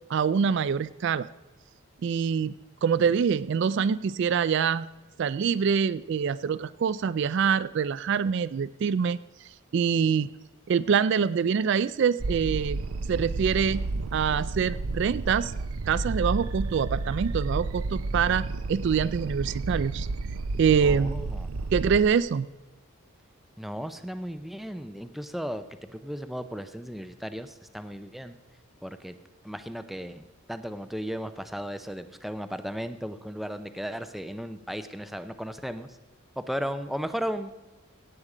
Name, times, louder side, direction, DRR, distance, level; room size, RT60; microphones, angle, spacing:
voice 1, 0.1-1.3 2.0-2.5 2.8-4.9 5.2-9.2 9.7-10.3 10.7-12.8 13.1-13.8 14.1-15.5 15.9-20.1 20.6-21.2 21.7-22.5, right 6 dB, 55° right, 16 dB, 0.3 m, -25 dB
sound 1, 12.2-22.0, right 3 dB, 85° right, 0.7 m, -31 dB
voice 2, 20.8-21.5 23.6-25.6 25.9-28.4 28.8-29.2 29.4-36.0 36.4-37.7, equal, ahead, 9 dB, 0.5 m, -35 dB
17.0 x 8.1 x 5.0 m, 1.1 s
head